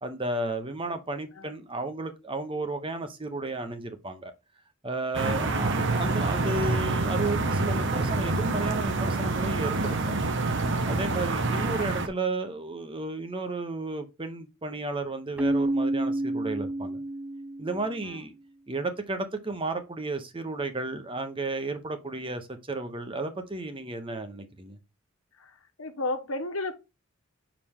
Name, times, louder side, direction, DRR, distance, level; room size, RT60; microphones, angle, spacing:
voice 1, 0.0-4.3 4.8-10.2 10.9-17.0 17.6-18.3 18.7-24.8, right 2 dB, 25° right, 0.9 m, -33 dB
sound 1, 5.1-12.1, right 3 dB, 60° right, 1.0 m, -27 dB
voice 2, 11.5-11.9 18.0-18.3 25.3-26.7, left 2 dB, 80° left, 1.3 m, -34 dB
Keyboard (musical), 15.4-18.0, right 1 dB, 5° right, 0.4 m, -29 dB
5.9 x 4.9 x 3.6 m
head